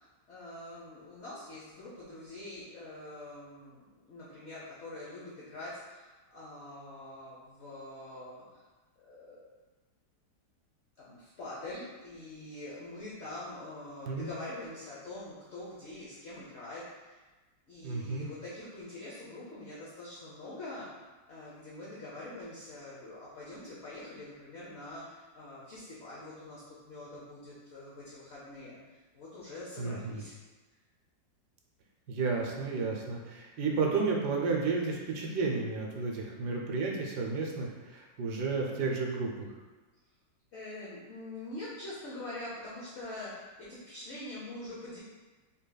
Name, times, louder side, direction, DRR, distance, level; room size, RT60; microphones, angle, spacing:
voice 1, 0.0-8.6 9.0-9.6 11.0-17.2 17.7-20.9 21.3-30.3 40.5-45.0, left 2 dB, 55° left, -7 dB, 0.7 m, -44 dB
voice 2, 17.8-18.3 29.8-30.2 32.1-39.5, right 4 dB, 70° right, 0 dB, 1.1 m, -32 dB
5.6 x 3.0 x 2.2 m, 1.2 s
omnidirectional pair, 2.0 m